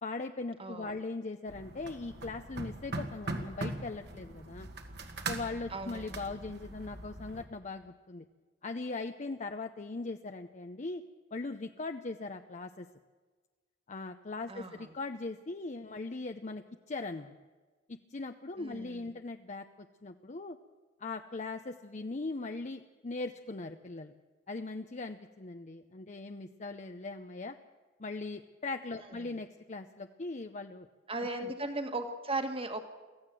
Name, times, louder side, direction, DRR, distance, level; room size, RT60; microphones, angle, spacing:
voice 1, 0.0-4.7 5.3-8.2 8.6-11.0 11.3-12.9 13.9-17.3 18.1-20.6 21.0-24.1 24.5-27.6 28.0-30.9 31.2-31.5, left 3 dB, 40° left, 7 dB, 0.7 m, -40 dB
voice 2, 0.6-1.0 5.7-6.3 14.5-15.0 18.6-19.2 29.1-29.4 31.1-32.8, right 2 dB, 30° right, 7 dB, 1.8 m, -37 dB
sound 1, 1.5-7.5, right 2 dB, 60° right, 2.2 m, -41 dB
24.5 x 15.5 x 7.7 m, 1.4 s
head